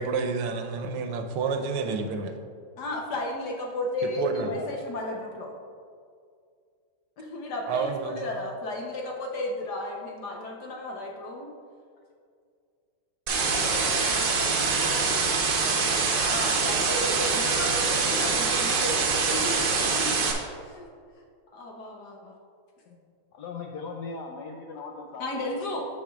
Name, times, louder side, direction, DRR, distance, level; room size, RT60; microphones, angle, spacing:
voice 1, 0.0-2.3 4.0-4.5 7.7-8.2, right 5 dB, 85° right, 6 dB, 1.6 m, -29 dB
voice 2, 2.8-5.5 7.2-11.5 16.2-20.1 20.6-20.9 21.5-22.3 25.2-25.9, left 1 dB, 60° left, 0 dB, 1.2 m, -34 dB
voice 3, 13.3-16.5 17.3-17.4 23.4-25.5, left 4 dB, 75° left, 0 dB, 0.9 m, -39 dB
sound 1, 13.3-20.3, right 4 dB, 60° right, 1.4 m, -24 dB
14.0 x 5.0 x 2.3 m, 2.2 s
omnidirectional pair, 2.4 m